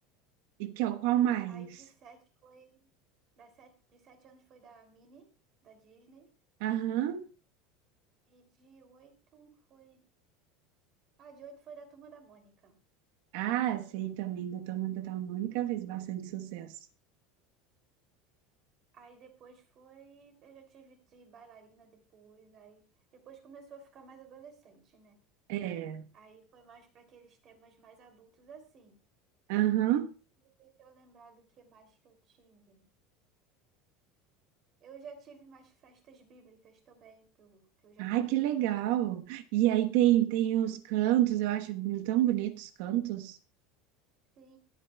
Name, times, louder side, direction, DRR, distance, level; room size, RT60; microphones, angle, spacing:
voice 1, 0.6-1.8 6.6-7.3 13.3-16.7 25.5-26.1 29.5-30.1 38.0-43.4, right 13 dB, 70° right, 1.2 m, -29 dB
voice 2, 1.5-2.9 3.4-5.3 5.6-6.3 8.3-10.0 11.2-12.7 18.9-22.8 23.1-25.2 26.1-29.0 30.6-32.9 34.8-38.5 44.4-44.6, right 5 dB, 35° right, 3.0 m, -55 dB
22.0 x 9.2 x 2.3 m
cardioid pair, 165°, 0 cm